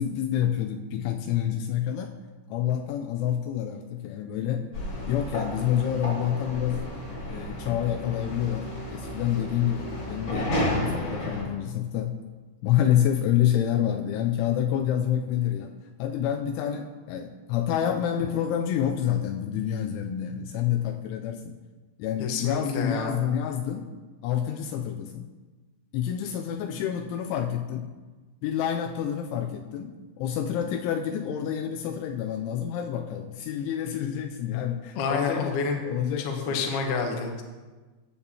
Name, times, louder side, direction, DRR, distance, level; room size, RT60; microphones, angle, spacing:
voice 1, 0.0-2.1 2.5-4.7 5.1-6.9 7.3-12.2 12.6-15.7 16.0-21.6 22.0-23.9 24.2-25.3 25.9-27.9 28.4-35.5 35.8-36.7, left 10 dB, 85° left, 4 dB, 2.9 m, -28 dB
sound 1, 4.7-11.4, equal, 35° left, 2.5 m, -32 dB
voice 2, 22.2-23.2 35.0-35.8 36.2-37.4, left 4 dB, 70° left, 2 dB, 2.7 m, -28 dB
15.5 x 8.5 x 2.8 m, 1.3 s
omnidirectional pair, 5.5 m